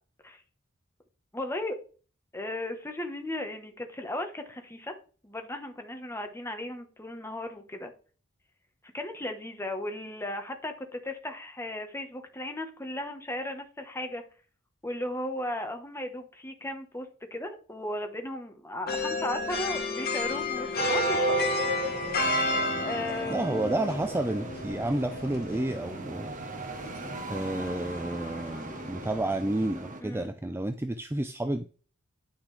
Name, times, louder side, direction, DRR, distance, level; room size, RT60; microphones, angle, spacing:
voice 1, 1.3-1.8 2.3-4.9 5.2-7.9 8.9-14.2 14.8-21.5 22.8-23.4 30.0-30.3, left 1 dB, 10° left, 5 dB, 1.2 m, -36 dB
sound 1, 18.9-29.2, left 2 dB, 50° left, 1.8 m, -32 dB
sound 2, 20.7-30.0, right 2 dB, 40° right, 1.2 m, -36 dB
voice 2, 23.3-26.3 27.3-31.6, right 1 dB, 10° right, 9 dB, 0.4 m, -30 dB
9.7 x 6.0 x 3.4 m, 0.38 s
head